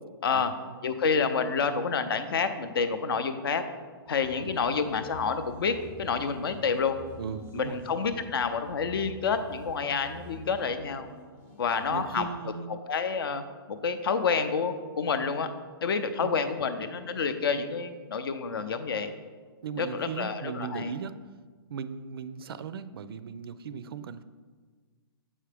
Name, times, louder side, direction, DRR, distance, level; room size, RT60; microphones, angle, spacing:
voice 1, 0.8-3.6 4.1-7.0 7.5-11.1 11.6-12.2 12.9-13.4 13.8-15.5 15.8-19.1 19.8-20.9, left 5 dB, 65° left, 10 dB, 0.6 m, -28 dB
sound 1, 4.1-12.1, equal, 10° left, 0.5 m, -49 dB
voice 2, 7.2-7.8 11.9-12.7 16.2-16.5 19.6-21.2 21.7-24.2, right 6 dB, 65° right, 14 dB, 0.4 m, -37 dB
7.4 x 4.7 x 3.4 m, 1.5 s
hypercardioid pair, 175°, 13 cm